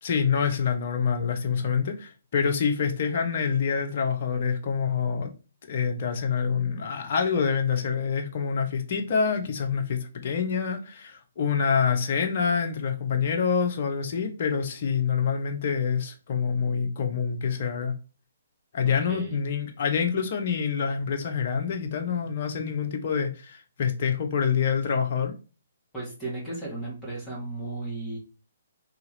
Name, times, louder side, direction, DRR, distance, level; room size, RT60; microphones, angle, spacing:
voice 1, 0.0-5.3 5.7-17.9 18.7-25.3, left 6 dB, 45° left, 0.8 m, -26 dB
voice 2, 18.8-19.4 25.9-28.2, right 2 dB, 10° left, 1.6 m, -35 dB
2.9 x 2.8 x 4.0 m
figure-of-eight pair, 130°, 0 cm